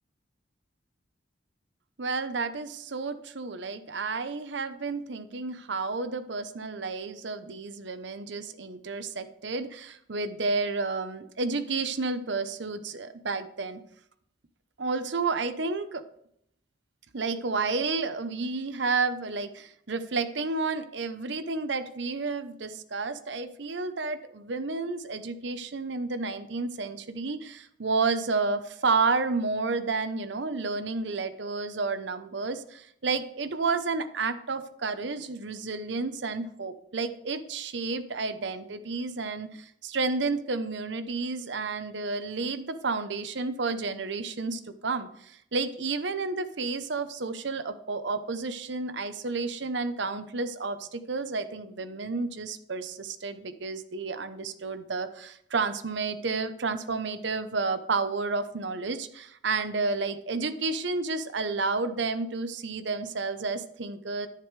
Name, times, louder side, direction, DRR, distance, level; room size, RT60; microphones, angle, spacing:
voice 1, 2.0-13.8 14.8-16.0 17.1-64.3, right 4 dB, 70° right, 11 dB, 0.8 m, -31 dB
10.5 x 9.4 x 3.3 m, 0.72 s
head